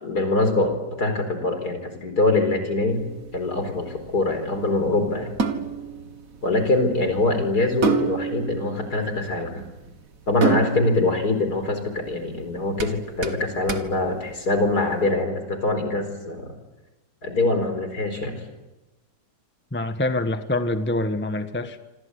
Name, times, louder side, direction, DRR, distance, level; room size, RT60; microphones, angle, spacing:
voice 1, 0.0-3.1 3.3-5.3 6.4-9.6 10.3-16.5 17.2-18.3, left 2 dB, 60° left, 7 dB, 5.0 m, -23 dB
sound 1, 2.9-15.0, right 5 dB, 50° right, 2.0 m, -31 dB
voice 2, 19.7-21.8, left 2 dB, 5° left, 8 dB, 1.1 m, -25 dB
26.5 x 26.5 x 8.3 m, 1.1 s
omnidirectional pair, 1.9 m